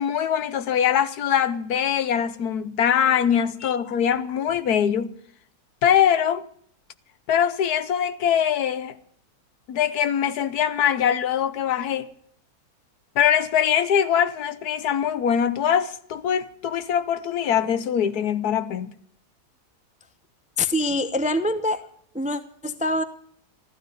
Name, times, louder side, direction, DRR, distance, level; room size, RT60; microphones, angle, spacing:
voice 1, 0.0-5.1 5.8-6.5 7.3-9.0 9.7-12.1 13.2-18.9, left 9 dB, 75° left, 1.4 m, -22 dB
voice 2, 20.6-21.8 22.1-23.0, left 1 dB, 10° right, 0.5 m, -25 dB
14.5 x 12.5 x 6.6 m
omnidirectional pair, 1.7 m